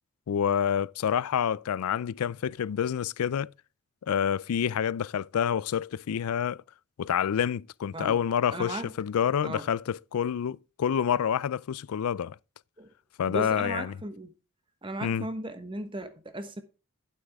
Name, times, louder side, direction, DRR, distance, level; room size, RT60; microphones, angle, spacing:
voice 1, 0.3-3.5 4.1-6.6 7.0-12.4 13.2-13.9 15.0-15.3, left 8 dB, 90° left, 0.4 m, -28 dB
voice 2, 8.5-8.9 9.4-9.7 12.8-12.9 13.3-14.3 14.8-16.6, right 1 dB, 25° right, 1.1 m, -36 dB
12.0 x 7.6 x 3.5 m
head